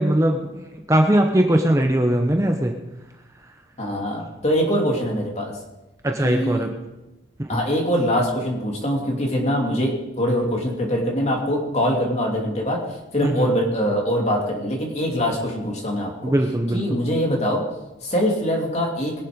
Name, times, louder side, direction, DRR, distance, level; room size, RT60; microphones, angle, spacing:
voice 1, 0.0-2.7 6.0-6.7 7.4-7.6 13.2-13.6 16.2-17.0, right 1 dB, 15° right, 3 dB, 0.8 m, -20 dB
voice 2, 3.8-5.5 6.2-6.6 7.5-12.8 13.1-16.3 16.7-17.6 18.0-19.1, equal, 35° left, 0 dB, 2.8 m, -23 dB
22.0 x 7.5 x 5.2 m, 0.99 s
head